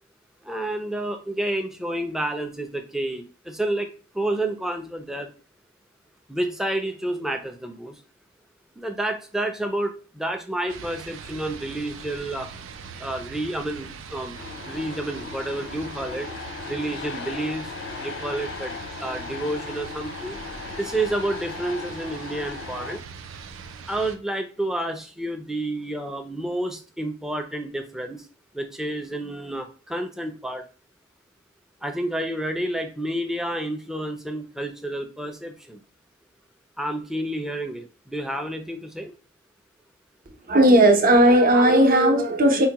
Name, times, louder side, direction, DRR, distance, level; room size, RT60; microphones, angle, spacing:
voice 1, 0.4-3.9 4.1-5.3 6.3-7.9 8.8-12.5 13.0-14.4 14.6-16.3 16.7-17.7 18.0-20.4 20.8-23.0 23.9-28.3 28.5-30.6 31.8-35.8 36.8-39.1, right 1 dB, ahead, 0.4 m, -29 dB
sound 1, 10.7-24.2, right 5 dB, 90° right, 0.4 m, -41 dB
sound 2, 14.3-23.0, left 5 dB, 60° left, 0.4 m, -37 dB
voice 2, 40.5-42.7, right 1 dB, 45° right, 0.7 m, -16 dB
4.5 x 2.2 x 2.8 m
head